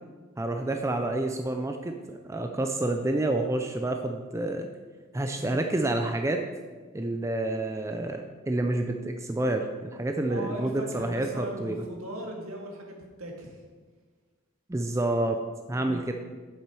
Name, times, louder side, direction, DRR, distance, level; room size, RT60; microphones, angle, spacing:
voice 1, 0.4-4.7 5.1-6.4 6.9-11.8 14.7-15.4 15.7-16.1, right 2 dB, 15° right, 4 dB, 0.4 m, -29 dB
voice 2, 10.3-13.5 15.7-16.0, equal, 75° right, 1 dB, 1.8 m, -38 dB
9.2 x 7.3 x 4.7 m, 1.4 s
head